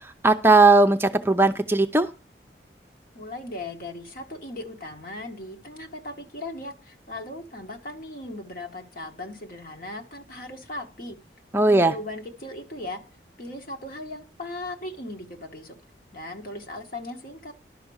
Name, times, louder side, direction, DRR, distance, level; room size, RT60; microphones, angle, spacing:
voice 1, 0.2-2.1 11.5-11.9, right 3 dB, 15° right, 6 dB, 0.6 m, -17 dB
voice 2, 3.1-11.2 11.6-13.0 13.4-15.8 16.1-17.5, left 2 dB, 55° left, 4 dB, 1.6 m, -38 dB
11.5 x 6.0 x 7.1 m, 0.35 s
head